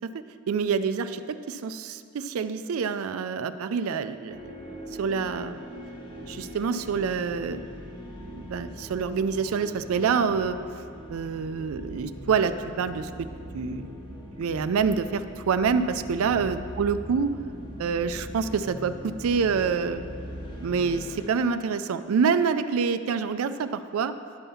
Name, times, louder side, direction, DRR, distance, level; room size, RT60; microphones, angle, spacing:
voice 1, 0.5-4.4 5.0-5.7 6.3-7.6 8.2-10.6 11.1-13.3 13.5-13.9 14.4-17.3 17.8-20.0 20.6-24.1, right 5 dB, 75° right, 11 dB, 0.4 m, -27 dB
sound 1, 4.3-21.3, equal, 20° left, 1.0 m, -41 dB
10.5 x 5.5 x 5.7 m, 2.3 s
head